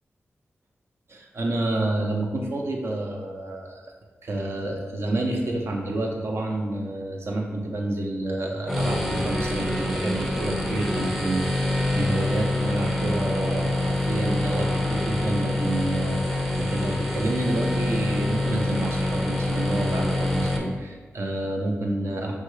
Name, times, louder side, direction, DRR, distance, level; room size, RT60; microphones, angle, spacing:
voice 1, 1.1-3.8 4.2-22.3, right 1 dB, 65° right, 0 dB, 0.6 m, -29 dB
sound 1, 8.7-20.6, left 1 dB, ahead, 0.5 m, -26 dB
5.4 x 2.2 x 3.1 m, 1.3 s
wide cardioid pair, 120°, 5 cm